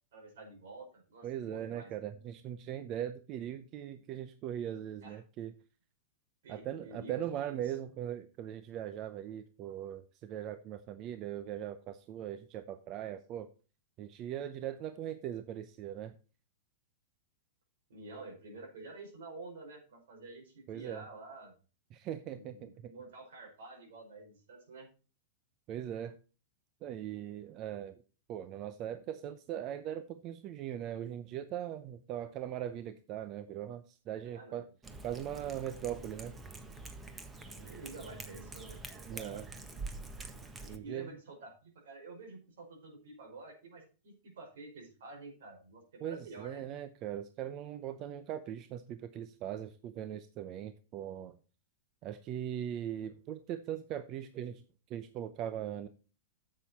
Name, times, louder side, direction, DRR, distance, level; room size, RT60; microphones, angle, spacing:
voice 1, 0.1-1.9 5.0-5.2 6.4-7.1 7.4-7.6 17.9-21.5 22.2-24.9 34.2-34.7 37.5-39.4 40.6-46.6, right 3 dB, 75° right, 2 dB, 5.2 m, -49 dB
voice 2, 1.2-5.5 6.5-13.5 14.0-16.1 20.7-21.1 21.9-22.9 25.7-26.1 26.8-28.0 28.3-34.7 35.0-36.3 39.1-39.5 40.7-41.2 46.0-51.4 52.0-54.6 54.9-55.9, right 10 dB, 40° right, 12 dB, 0.7 m, -40 dB
Cat, 34.8-40.8, right 3 dB, 15° right, 1.4 m, -46 dB
10.0 x 7.6 x 4.2 m, 0.35 s
hypercardioid pair, 120°, 0 cm